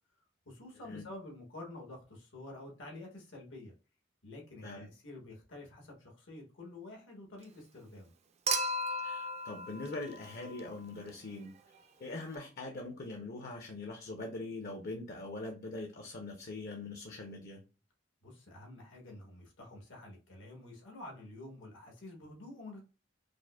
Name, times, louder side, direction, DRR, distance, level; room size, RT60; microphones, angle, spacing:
voice 1, 0.4-3.7 4.2-8.1 18.2-22.8, left 2 dB, 85° left, 1.3 m, -49 dB
Human group actions / Chink clink / Liquid, 8.5-10.9 12.3-12.4, right 1 dB, 35° right, 0.4 m, -36 dB
voice 2, 8.9-11.5 12.0-17.6, left 2 dB, 55° left, 0.6 m, -42 dB
5.0 x 2.0 x 2.2 m
head